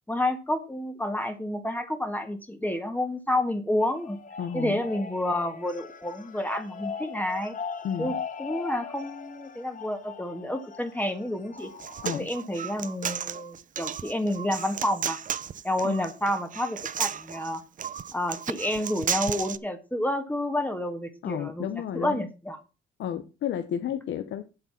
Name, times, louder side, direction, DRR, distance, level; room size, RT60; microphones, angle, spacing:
voice 1, 0.1-4.2 4.5-7.5 8.0-8.1 8.4-11.7 12.1-15.2 15.6-17.6 18.1-21.7 21.9-22.6, left 1 dB, 10° left, 1.5 m, -29 dB
sound 1, 3.8-12.2, left 6 dB, 40° left, 1.4 m, -40 dB
voice 2, 4.4-4.8 7.8-8.2 12.0-12.3 15.8-16.0 21.2-22.2 23.0-24.4, left 9 dB, 70° left, 0.9 m, -32 dB
Human voice, 11.6-19.6, right 8 dB, 40° right, 0.6 m, -33 dB
7.9 x 6.8 x 5.7 m
cardioid pair, 90°, 20 cm